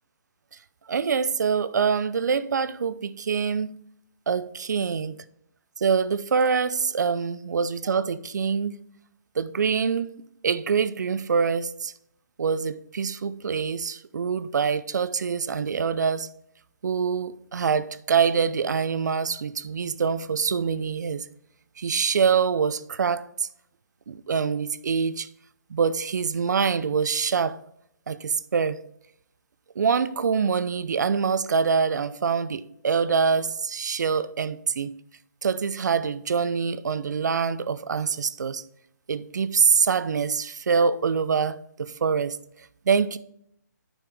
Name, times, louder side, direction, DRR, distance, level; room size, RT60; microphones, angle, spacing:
voice 1, 0.9-3.8 4.3-5.2 5.8-8.8 9.4-10.1 10.4-11.9 12.4-16.3 16.8-21.3 21.8-23.5 24.1-25.3 25.7-27.6 28.1-28.8 29.8-34.9 35.4-38.6 39.1-42.4 42.9-43.2, right 6 dB, 70° right, 0.6 m, -25 dB
9.9 x 5.7 x 3.5 m
hypercardioid pair, 145°, 10 cm